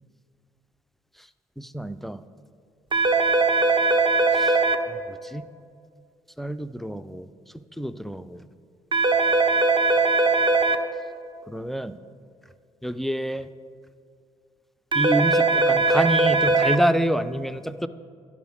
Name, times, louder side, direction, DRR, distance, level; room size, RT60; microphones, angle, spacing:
voice 1, 1.6-2.2 4.3-4.6 4.9-5.4 6.4-7.3 7.8-8.4 11.5-12.0 12.8-13.5 14.9-17.9, equal, ahead, 13 dB, 0.4 m, -27 dB
sound 1, 2.9-4.8 8.9-10.8 14.9-16.8, right 3 dB, 30° right, 0.8 m, -20 dB
10.5 x 5.0 x 6.3 m, 2.2 s
hypercardioid pair, 50°, 15 cm